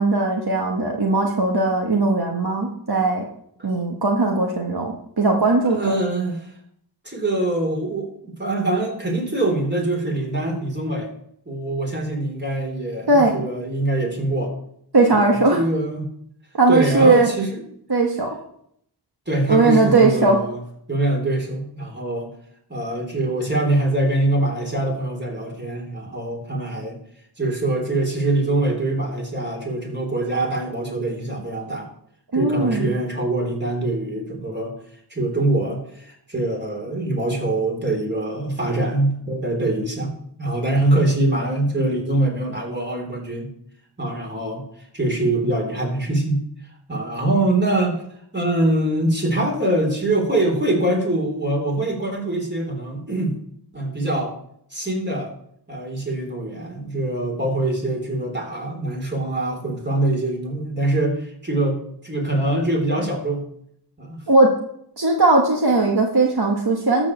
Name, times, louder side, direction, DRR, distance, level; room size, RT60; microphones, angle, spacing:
voice 1, 0.0-3.2 3.6-5.9 13.1-13.3 14.9-15.6 16.6-17.3 17.9-18.3 19.5-20.4 32.3-32.8 64.3-64.5 65.0-67.1, right 3 dB, 65° right, 0 dB, 1.5 m, -18 dB
voice 2, 5.7-6.5 7.1-11.1 11.5-14.5 15.1-16.1 16.7-17.6 19.3-20.6 20.9-22.3 22.7-27.0 27.4-31.9 32.3-34.8 35.1-40.1 40.4-43.5 44.0-44.6 44.9-46.4 46.9-48.0 48.3-53.3 53.7-54.3 54.7-55.3 55.7-63.4 64.0-64.2, right 2 dB, 25° right, 1 dB, 3.4 m, -23 dB
12.5 x 4.9 x 7.1 m, 0.69 s
wide cardioid pair, 55°, 42 cm